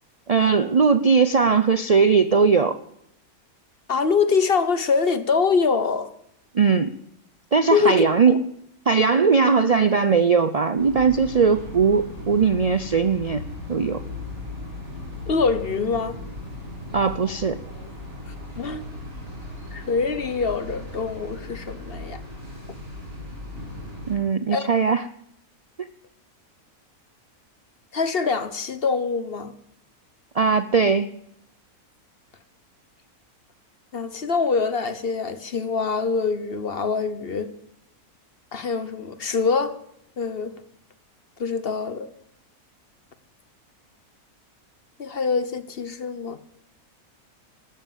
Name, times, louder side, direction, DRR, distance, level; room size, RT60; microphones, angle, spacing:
voice 1, 0.3-2.7 6.5-6.9 7.5-8.4 8.9-13.4 13.7-14.0 16.9-17.6 24.1-25.0 30.3-31.1, right 5 dB, 75° right, 0.3 m, -19 dB
voice 2, 3.9-6.1 7.7-8.4 15.3-16.2 18.6-18.8 19.7-22.2 24.5-24.7 27.9-29.5 33.9-37.5 38.5-39.8 40.2-40.5 41.4-42.1 45.0-46.4, left 5 dB, 45° left, 1.1 m, -24 dB
sound 1, 10.8-24.2, left 2 dB, 40° right, 6.4 m, -37 dB
13.0 x 12.5 x 7.4 m
omnidirectional pair, 1.6 m